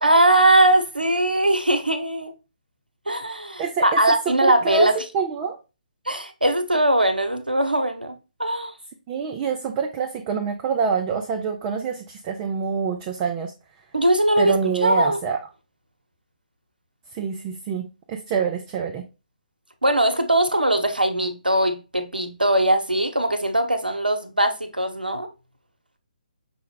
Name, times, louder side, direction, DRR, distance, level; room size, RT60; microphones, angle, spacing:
voice 1, 0.0-2.3 3.1-5.0 6.1-8.7 13.9-15.2 19.8-25.3, right 1 dB, 85° right, 0.8 m, -20 dB
voice 2, 3.6-4.0 4.3-4.9 5.1-5.6 9.1-13.5 14.4-15.4 17.1-19.0, right 6 dB, 20° right, 0.4 m, -26 dB
5.7 x 2.1 x 3.8 m
figure-of-eight pair, 140°, 5 cm